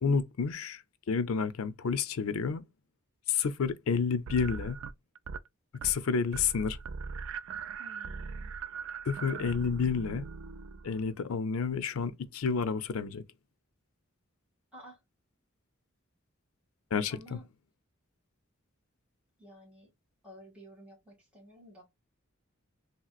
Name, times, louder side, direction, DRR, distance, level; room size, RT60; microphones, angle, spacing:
voice 1, 0.0-2.6 3.3-4.8 5.8-6.8 9.1-10.3 10.8-13.2 16.9-17.2, left 5 dB, 80° left, 0.5 m, -30 dB
sound 1, 4.3-5.5 5.7-6.1 6.3-11.1, right 5 dB, 65° right, 0.3 m, -40 dB
voice 2, 7.8-8.5 14.7-15.0 17.1-17.4 19.4-19.9 20.2-21.8, right 1 dB, 5° right, 1.9 m, -52 dB
3.1 x 2.8 x 2.3 m
head